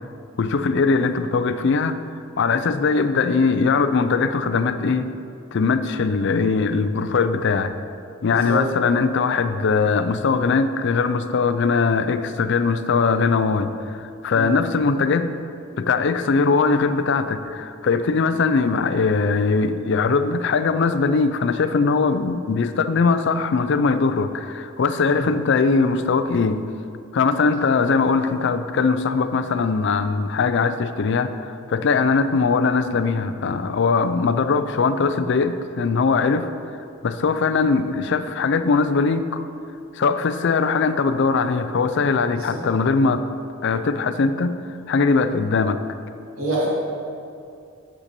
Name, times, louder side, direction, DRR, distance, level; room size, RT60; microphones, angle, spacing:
voice 1, 0.4-2.0 2.4-5.1 5.5-7.7 8.2-15.3 15.8-26.6 27.1-36.5 37.0-39.4 40.0-43.2 43.6-44.5 44.9-45.8, left 4 dB, 55° left, 11 dB, 0.4 m, -21 dB
voice 2, 42.4-42.7 46.4-46.7, right 1 dB, 85° right, -6 dB, 2.2 m, -27 dB
8.7 x 6.7 x 4.2 m, 2.5 s
head